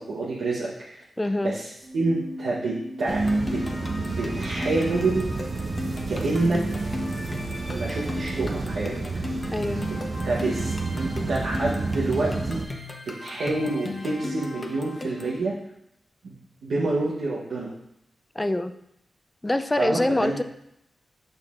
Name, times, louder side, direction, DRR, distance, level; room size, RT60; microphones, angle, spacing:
voice 1, 0.0-1.0 1.4-1.7 1.9-3.2 3.5-3.6 4.2-5.3 6.1-6.6 7.7-8.9 10.2-12.8 13.1-15.5 16.2-16.3 16.6-17.7 19.8-20.4, right 2 dB, 85° right, -6 dB, 0.8 m, -27 dB
voice 2, 1.2-1.6 9.5-9.9 18.4-18.7 19.4-20.4, left 1 dB, 20° left, 11 dB, 0.4 m, -25 dB
Keyboard (musical), 1.8-7.8, equal, 30° right, 1.0 m, -41 dB
sound 1, 3.1-15.4, left 2 dB, 35° left, 0.9 m, -37 dB
sound 2, 3.1-12.7, right 3 dB, 55° right, 0.6 m, -30 dB
6.6 x 5.9 x 2.4 m, 0.79 s
cardioid pair, 50°, 0 cm